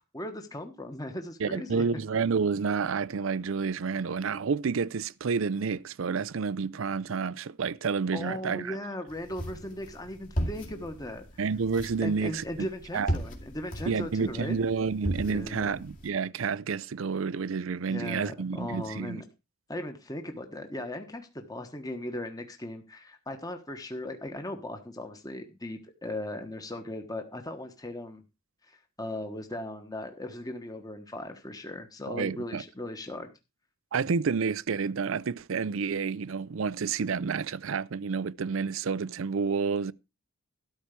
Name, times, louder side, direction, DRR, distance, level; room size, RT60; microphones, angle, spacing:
voice 1, 0.1-1.8 8.1-11.4 12.0-14.6 15.2-15.8 17.9-19.2 19.7-28.2 28.7-33.3, left 1 dB, 20° left, 1.3 m, -38 dB
voice 2, 1.4-8.8 11.4-12.7 12.9-13.1 13.9-19.2 32.1-32.6 33.9-39.9, right 5 dB, 70° right, 0.5 m, -29 dB
sound 1, 9.1-16.1, equal, 40° left, 2.4 m, -37 dB
13.0 x 4.5 x 8.4 m
head